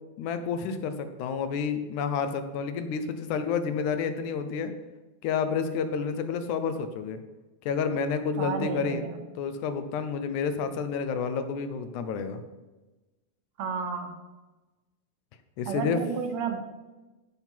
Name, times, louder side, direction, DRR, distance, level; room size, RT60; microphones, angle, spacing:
voice 1, 0.2-4.7 5.2-7.2 7.7-9.0 9.4-12.4 15.6-16.0, left 6 dB, 80° left, 9 dB, 2.2 m, -29 dB
voice 2, 8.4-9.2 13.6-14.2 15.7-16.6, right 6 dB, 70° right, 5 dB, 2.1 m, -32 dB
15.5 x 5.9 x 4.5 m, 1.1 s
omnidirectional pair, 3.5 m